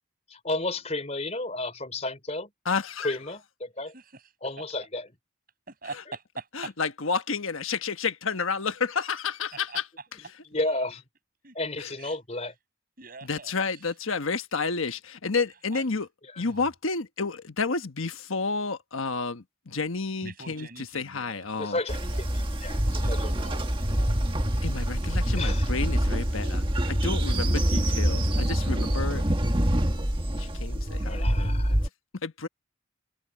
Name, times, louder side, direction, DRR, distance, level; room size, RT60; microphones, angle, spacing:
voice 1, 0.3-2.5 3.0-3.9 4.4-5.1 10.5-11.1 11.5-12.5 16.2-16.4 21.6-23.6 25.3-25.7 31.0-31.8, left 2 dB, 30° left, 4.0 m, -33 dB
voice 2, 2.7-3.1 6.5-9.8 11.8-11.9 13.3-16.1 16.4-21.8 24.6-29.2 30.4-31.5 32.2-32.5, left 4 dB, 80° left, 1.3 m, -30 dB
voice 3, 5.7-6.7 9.5-10.0 10.5-10.8 11.4-11.6 12.0-12.1 13.0-13.9 15.7-15.8 16.4-16.6 20.2-21.5 21.9-22.2 23.0-24.2 29.2-29.4, right 3 dB, 45° right, 7.8 m, -44 dB
Train, 21.9-31.9, equal, 25° right, 1.7 m, -26 dB
head